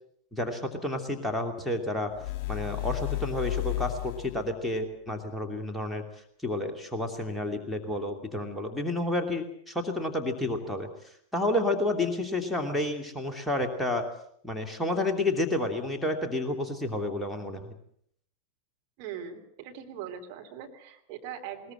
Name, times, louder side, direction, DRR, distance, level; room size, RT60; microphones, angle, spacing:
voice 1, 0.3-2.1 2.5-6.0 6.4-14.1 14.4-17.7, left 1 dB, 5° left, 3 dB, 2.6 m, -30 dB
sound 1, 2.1-4.5, left 18 dB, 40° left, 2.6 m, -33 dB
voice 2, 19.0-21.7, right 8 dB, 45° right, 3 dB, 3.2 m, -41 dB
21.0 x 20.5 x 7.8 m, 0.67 s
figure-of-eight pair, 90°, 0 cm